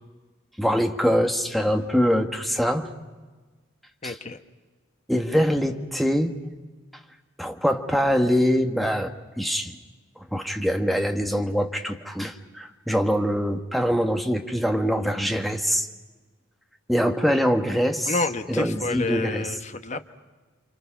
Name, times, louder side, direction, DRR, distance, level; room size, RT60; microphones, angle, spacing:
voice 1, 0.6-2.9 4.0-4.2 5.1-6.3 7.4-9.8 10.2-15.9 16.9-18.2 18.5-19.6, equal, ahead, 4 dB, 1.4 m, -24 dB
voice 2, 4.0-4.4 18.1-20.1, left 3 dB, 35° left, 8 dB, 1.1 m, -29 dB
29.5 x 26.5 x 5.8 m, 1.3 s
head